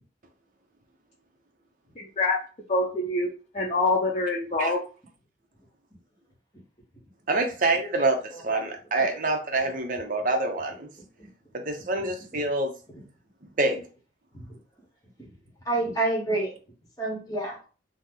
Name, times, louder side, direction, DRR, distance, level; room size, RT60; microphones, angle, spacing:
voice 1, 2.0-2.4 2.7-3.3 3.5-4.8, left 2 dB, 35° left, 0.5 m, -25 dB
voice 2, 7.3-10.9 11.5-12.7 13.6-13.8, right 2 dB, 45° right, 0.6 m, -26 dB
voice 3, 7.9-8.4 11.2-11.3 12.3-12.4 12.9-13.0 14.3-14.6 15.2-15.3 15.6-16.6 17.0-17.6, right 2 dB, 20° left, 1.0 m, -29 dB
2.8 x 2.0 x 3.6 m
head